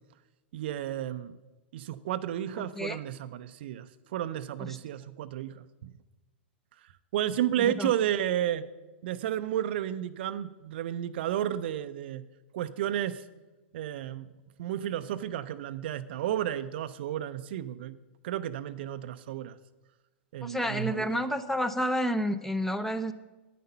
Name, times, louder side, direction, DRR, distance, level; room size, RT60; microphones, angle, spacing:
voice 1, 0.5-1.4 1.7-5.9 7.1-8.7 9.0-12.2 12.5-13.2 13.7-14.3 14.6-18.0 18.2-19.6 20.3-21.2, right 11 dB, 60° right, 13 dB, 0.5 m, -32 dB
voice 2, 2.6-3.0 4.6-4.8 7.6-7.9 20.4-23.1, equal, 5° left, 12 dB, 0.6 m, -30 dB
9.5 x 9.2 x 5.5 m, 1.1 s
hypercardioid pair, 105°, 6 cm